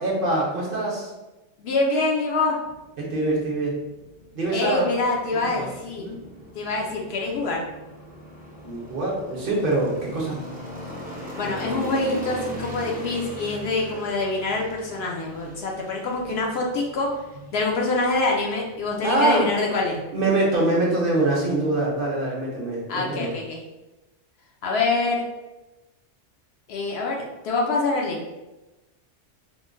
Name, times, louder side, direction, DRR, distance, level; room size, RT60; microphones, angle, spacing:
voice 1, 0.0-1.1 3.0-3.8 4.3-4.9 5.5-5.7 6.0-6.2 8.6-10.4 19.0-19.5 20.1-23.3, right 2 dB, 55° right, -3 dB, 0.8 m, -24 dB
voice 2, 1.6-2.6 4.5-6.1 6.5-7.6 11.4-17.1 17.5-20.0 22.9-23.6 24.6-25.2 26.7-27.2 27.4-28.2, left 3 dB, 65° left, -1 dB, 0.7 m, -25 dB
sound 1, 2.6-22.0, equal, 10° right, 0.5 m, -40 dB
3.6 x 2.1 x 2.5 m, 1.1 s
omnidirectional pair, 1.2 m